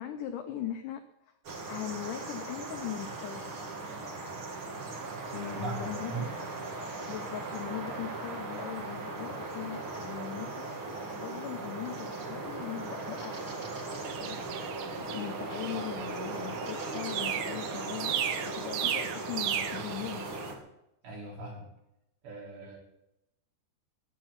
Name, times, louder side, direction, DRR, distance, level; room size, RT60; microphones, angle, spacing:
voice 1, 0.0-1.3 1.7-3.5 5.3-6.3 7.1-13.4 14.2-14.4 15.0-20.4, left 11 dB, 80° left, 7 dB, 1.9 m, -40 dB
sound 1, 1.4-20.6, right 3 dB, 40° right, 2.1 m, -38 dB
voice 2, 5.3-6.3 21.0-21.7 22.2-22.8, right 3 dB, 65° right, -3 dB, 6.1 m, -39 dB
sound 2, 14.1-20.5, right 10 dB, 85° right, 3.2 m, -36 dB
16.0 x 5.7 x 9.8 m, 0.84 s
omnidirectional pair, 4.8 m